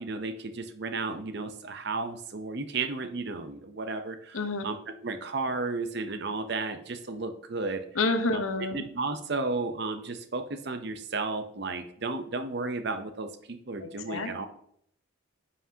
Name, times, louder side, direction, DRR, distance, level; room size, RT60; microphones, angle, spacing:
voice 1, 0.0-4.4 4.6-4.8 5.0-7.8 8.7-14.5, right 3 dB, 55° right, 8 dB, 0.7 m, -33 dB
voice 2, 4.3-4.7 7.9-8.8 13.8-14.5, left 3 dB, 85° left, 7 dB, 1.0 m, -29 dB
9.3 x 5.8 x 2.8 m, 0.69 s
head